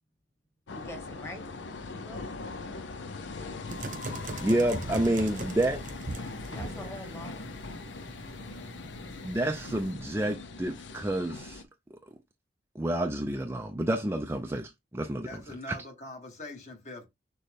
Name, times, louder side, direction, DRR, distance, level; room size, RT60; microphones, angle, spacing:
sound 1, 0.7-11.6, left 3 dB, 85° left, 0.6 m, -41 dB
voice 1, 0.7-2.3 6.5-7.6, left 1 dB, 15° left, 1.2 m, -45 dB
sound 2, 3.7-9.9, right 2 dB, 45° right, 0.9 m, -41 dB
voice 2, 4.4-5.8 9.2-11.6 11.9-12.0 12.8-15.4, right 1 dB, 15° right, 0.4 m, -29 dB
voice 3, 15.2-17.1, left 1 dB, 40° left, 1.2 m, -43 dB
6.5 x 2.2 x 3.4 m
head